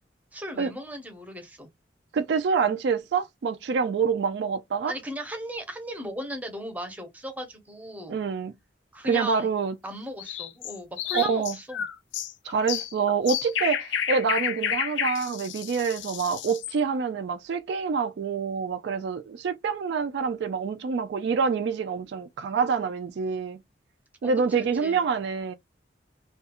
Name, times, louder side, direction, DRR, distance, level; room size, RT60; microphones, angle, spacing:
voice 1, 0.3-1.7 4.9-8.2 8.9-9.5 9.8-11.8 24.2-25.1, equal, 10° right, 0.6 m, -37 dB
voice 2, 2.1-4.9 8.1-8.5 9.0-9.7 11.1-11.5 12.4-23.6 24.2-25.5, right 5 dB, 65° right, 0.3 m, -26 dB
sound 1, 10.2-16.8, left 9 dB, 80° left, 0.4 m, -31 dB
2.4 x 2.2 x 2.8 m
head